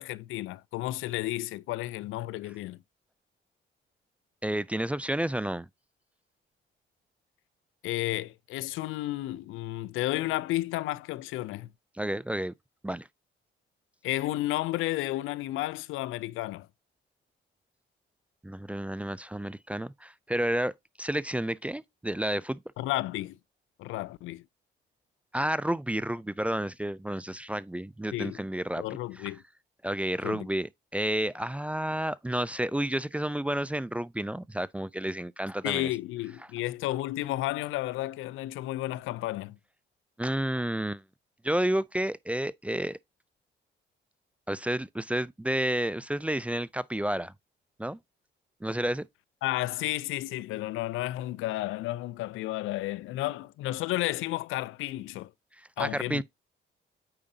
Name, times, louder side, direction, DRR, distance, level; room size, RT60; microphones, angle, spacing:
voice 1, 0.0-2.8 7.8-11.7 14.0-16.7 22.8-23.4 23.8-24.4 28.1-28.4 28.8-29.4 30.2-30.5 35.6-39.6 49.4-55.3 55.8-56.2, left 16 dB, 90° left, 0.4 m, -32 dB
voice 2, 4.4-5.7 11.9-12.5 12.8-13.1 18.4-20.7 21.0-22.6 25.3-28.8 29.2-29.3 29.8-35.9 40.2-41.0 41.4-43.0 44.5-47.3 47.8-48.0 48.6-49.1 55.6-56.2, right 1 dB, 5° right, 0.4 m, -31 dB
8.8 x 4.9 x 2.7 m
cardioid pair, 90°, 20 cm